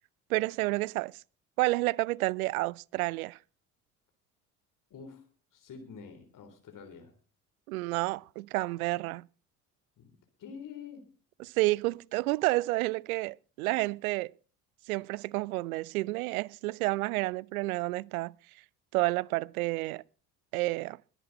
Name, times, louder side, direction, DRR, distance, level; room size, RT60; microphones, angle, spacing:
voice 1, 0.3-1.2 1.6-3.4 7.7-9.2 11.4-14.3 14.9-18.3 18.9-20.0 20.5-21.0, right 21 dB, 70° right, 0.6 m, -30 dB
voice 2, 4.9-5.2 5.5-7.1 10.0-11.2, left 6 dB, 45° left, 3.6 m, -47 dB
22.0 x 8.2 x 4.1 m
figure-of-eight pair, 55°, 44 cm